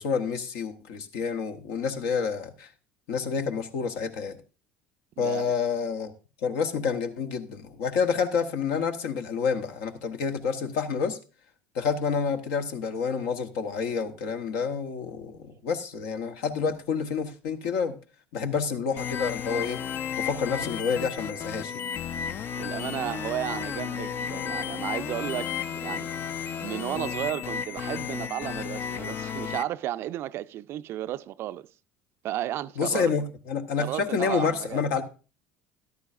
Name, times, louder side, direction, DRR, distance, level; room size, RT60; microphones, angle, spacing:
voice 1, 0.0-2.7 3.1-4.4 5.2-6.1 6.4-11.2 11.7-18.0 18.3-19.8 20.2-21.8 32.8-35.0, left 6 dB, 65° left, 1.0 m, -28 dB
voice 2, 5.2-5.5 22.6-26.1 26.6-31.7 32.2-33.1 33.8-34.8, right 13 dB, 50° right, 0.4 m, -33 dB
sound 1, 19.0-29.6, left 8 dB, 45° left, 0.5 m, -33 dB
13.5 x 11.0 x 2.5 m
hypercardioid pair, 65°, 5 cm